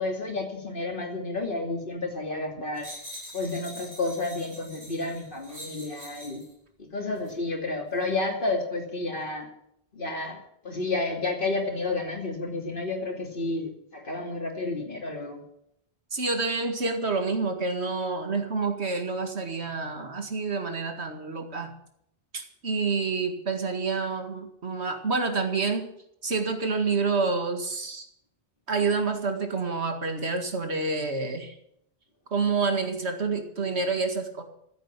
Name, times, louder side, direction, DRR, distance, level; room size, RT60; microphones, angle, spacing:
voice 1, 0.0-2.9 3.3-6.4 6.9-9.5 9.9-10.4 10.6-15.4, left 2 dB, 55° left, 2 dB, 2.9 m, -31 dB
sound 1, 2.8-6.5 7.2-7.3, equal, 15° right, 6.9 m, -44 dB
voice 2, 16.1-21.7 22.3-25.9 26.2-28.1 28.7-31.5 32.3-34.4, right 4 dB, 90° right, 6 dB, 2.3 m, -28 dB
14.5 x 8.3 x 9.8 m, 0.75 s
omnidirectional pair, 1.1 m